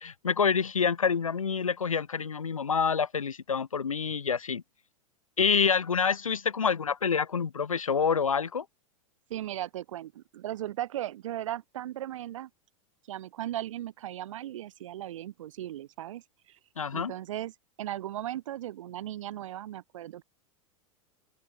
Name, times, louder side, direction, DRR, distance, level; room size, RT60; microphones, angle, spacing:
voice 1, 0.0-4.6 5.4-8.6 16.8-17.1, left 6 dB, 90° left, 1.4 m, -27 dB
voice 2, 9.3-12.5 13.1-16.2 16.5-16.6 16.9-17.5 17.8-20.2, right 13 dB, 70° right, 1.5 m, -37 dB
open air
hypercardioid pair, 95°, 17 cm